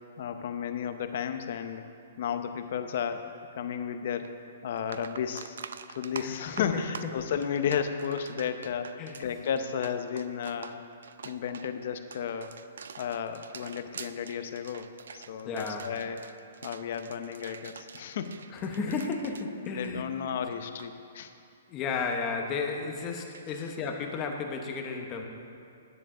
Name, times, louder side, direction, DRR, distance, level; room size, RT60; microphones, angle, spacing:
voice 1, 0.2-4.3 4.6-5.6 5.9-10.8 11.2-12.5 13.0-14.9 15.1-16.2 16.6-18.4 19.6-21.3, left 7 dB, 50° left, 9 dB, 0.7 m, -33 dB
sound 1, 4.2-4.3 4.7-20.4 20.6-20.9 23.3-23.5, right 6 dB, 80° right, 0.5 m, -46 dB
voice 2, 6.2-7.2 9.0-9.2 15.4-15.9 18.5-20.0 21.7-25.2, left 4 dB, 20° left, 3 dB, 0.9 m, -33 dB
13.5 x 10.0 x 3.8 m, 2.4 s
hypercardioid pair, 170°, 0 cm